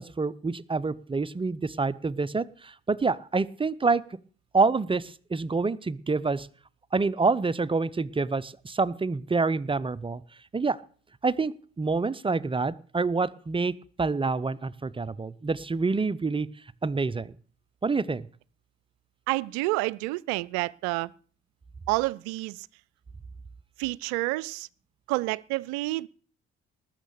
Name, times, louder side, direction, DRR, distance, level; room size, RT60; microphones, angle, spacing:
voice 1, 0.0-4.0 4.5-6.5 6.9-10.2 10.5-10.8 11.2-16.5 16.8-17.3 17.8-18.2, right 4 dB, 15° right, 0.6 m, -27 dB
voice 2, 19.3-21.1 21.9-22.7 23.8-24.7 25.1-26.1, right 21 dB, 60° right, 0.5 m, -29 dB
19.5 x 6.5 x 6.8 m
figure-of-eight pair, 45°, 32 cm